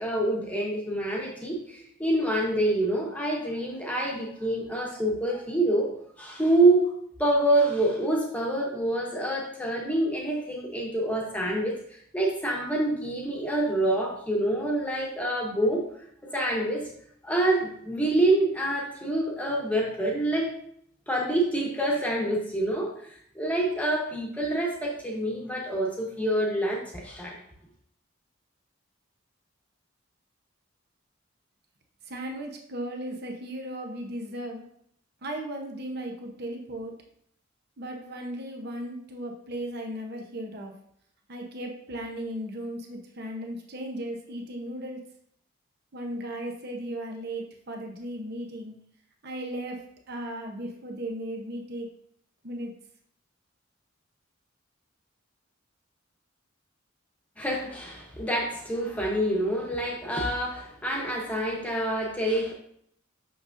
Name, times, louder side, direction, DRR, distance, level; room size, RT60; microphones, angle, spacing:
voice 1, 0.0-5.9 6.2-6.9 7.2-15.8 16.3-16.9 17.2-20.5 21.1-27.4 57.4-62.5, right 1 dB, 5° left, -2 dB, 1.1 m, -26 dB
voice 2, 32.1-34.7 35.2-36.9 37.8-40.7 41.3-45.0 45.9-48.7 49.2-49.8 50.1-51.9 52.4-52.7, right 1 dB, 50° right, 2 dB, 0.8 m, -36 dB
6.4 x 5.9 x 2.6 m, 0.67 s
head